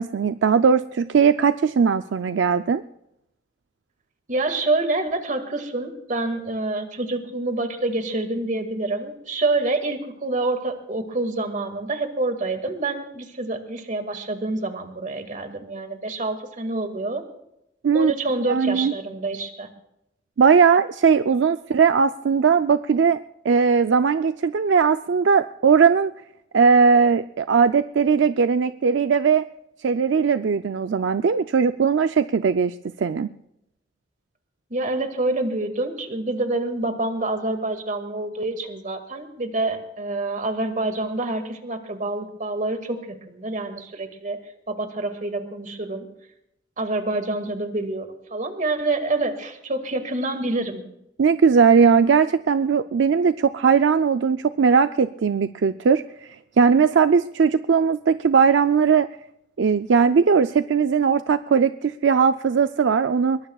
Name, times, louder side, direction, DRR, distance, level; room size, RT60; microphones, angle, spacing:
voice 1, 0.0-2.8 17.8-18.1 18.5-18.9 20.4-23.2 23.4-26.1 26.5-29.4 29.8-33.3 51.2-59.1 59.6-63.4, right 6 dB, 75° right, 10 dB, 0.4 m, -19 dB
voice 2, 4.3-17.2 17.9-19.7 34.7-44.4 44.7-46.1 46.8-50.8, right 2 dB, 45° right, 7 dB, 2.0 m, -27 dB
22.5 x 22.0 x 2.4 m, 0.83 s
head